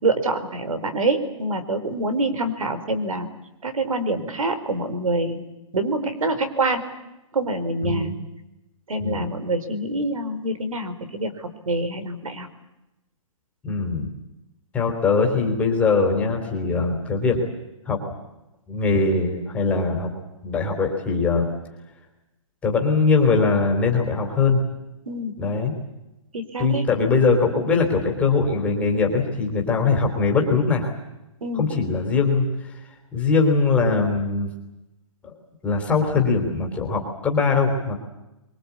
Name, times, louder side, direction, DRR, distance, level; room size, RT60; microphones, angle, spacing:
voice 1, 0.0-3.3 3.6-5.4 5.7-6.9 7.3-8.1 8.9-12.5 25.1-25.3 26.3-26.9 31.4-31.7, right 2 dB, 90° right, 11 dB, 4.5 m, -26 dB
voice 2, 7.8-8.1 9.0-9.3 13.6-14.1 14.7-17.4 17.9-18.0 18.7-20.1 20.4-21.5 22.6-24.6 25.4-25.7 26.6-30.9 31.5-34.5 35.2-35.3 35.6-38.0, left 4 dB, 5° left, 1 dB, 3.5 m, -21 dB
24.5 x 23.0 x 8.5 m, 0.95 s
hypercardioid pair, 170°, 17 cm